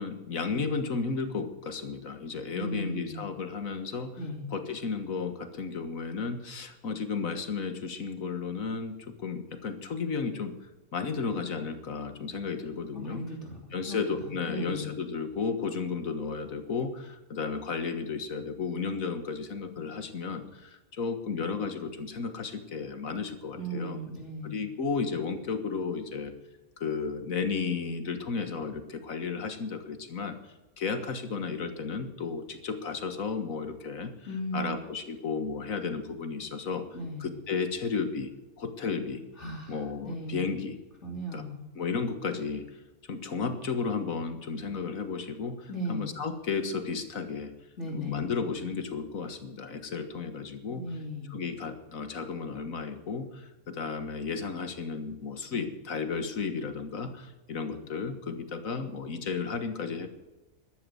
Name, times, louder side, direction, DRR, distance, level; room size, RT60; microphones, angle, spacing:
voice 1, 0.0-4.2 4.5-10.6 10.9-13.2 13.7-24.0 24.4-26.3 26.8-30.4 30.8-34.1 34.5-36.9 37.2-38.3 38.6-39.2 39.7-40.8 41.3-41.4 41.8-42.7 43.1-47.5 47.9-50.9 51.3-60.1, left 5 dB, 70° left, 9 dB, 1.9 m, -33 dB
voice 2, 2.5-3.3 4.2-4.5 12.9-14.9 23.5-24.6 34.3-34.7 36.9-37.3 39.4-40.5 41.0-41.6 45.7-46.1 47.8-48.3 50.8-51.3, equal, 50° left, -1 dB, 3.5 m, -37 dB
12.5 x 12.5 x 7.8 m, 1.0 s
omnidirectional pair, 1.5 m